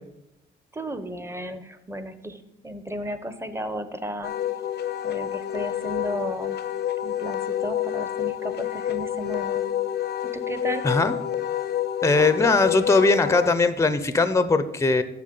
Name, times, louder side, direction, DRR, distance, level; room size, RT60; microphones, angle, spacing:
voice 1, 0.7-4.4 5.0-6.6 7.0-9.7 10.2-10.9, equal, 15° right, 11 dB, 0.9 m, -34 dB
Wind instrument woodwind instrument, 4.2-13.5, left 11 dB, 60° left, 0.6 m, -28 dB
voice 2, 12.0-15.0, left 3 dB, 15° left, 12 dB, 0.7 m, -20 dB
7.5 x 6.0 x 7.6 m, 0.88 s
cardioid pair, 90°, 20 cm